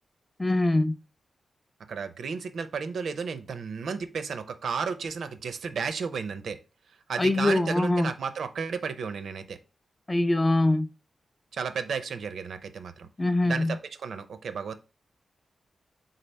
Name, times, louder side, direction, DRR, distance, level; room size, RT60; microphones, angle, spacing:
voice 1, 0.4-0.9 7.2-8.1 10.1-10.9 13.2-13.8, left 2 dB, 15° left, 0.3 m, -23 dB
voice 2, 1.9-6.6 7.1-9.6 11.5-13.1 13.4-14.7, right 5 dB, 80° right, 0.5 m, -33 dB
4.1 x 3.9 x 3.2 m
wide cardioid pair, 130°, 0 cm